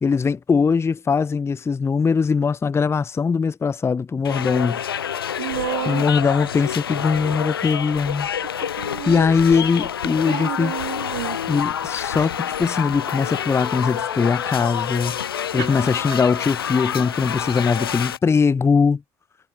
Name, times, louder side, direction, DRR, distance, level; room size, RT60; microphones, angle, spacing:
voice 1, 0.0-4.8 5.9-8.3 8.7-10.7 11.5-15.2 15.5-19.0, left 5 dB, 20° left, 0.4 m, -21 dB
sound 1, 4.2-18.2, left 9 dB, 90° left, 1.0 m, -28 dB
voice 2, 5.4-6.1 8.8-9.2 10.3-11.4 15.5-15.9 17.0-17.1, right 22 dB, 75° right, 0.8 m, -30 dB
sound 2, 13.2-18.3, left 10 dB, 55° left, 7.1 m, -37 dB
hypercardioid pair, 50°, 12 cm